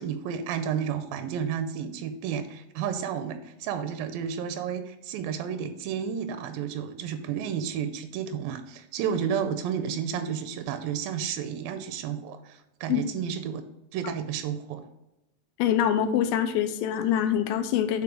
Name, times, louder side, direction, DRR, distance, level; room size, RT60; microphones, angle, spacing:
voice 1, 0.0-13.6 13.9-14.8, right 8 dB, 85° right, 9 dB, 2.3 m, -31 dB
voice 2, 15.6-18.0, left 10 dB, 85° left, 10 dB, 2.3 m, -24 dB
8.4 x 3.6 x 5.0 m, 0.93 s
omnidirectional pair, 4.0 m